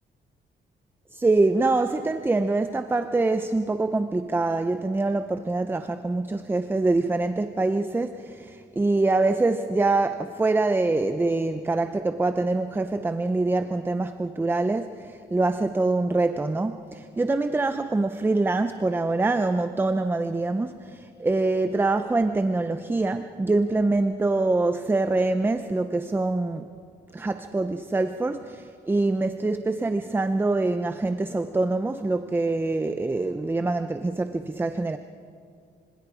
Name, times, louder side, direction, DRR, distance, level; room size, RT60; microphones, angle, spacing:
voice 1, 1.1-26.7 27.1-35.0, right 2 dB, 10° right, 10 dB, 0.5 m, -25 dB
26.0 x 25.0 x 4.9 m, 2.3 s
wide cardioid pair, 160°, 19 cm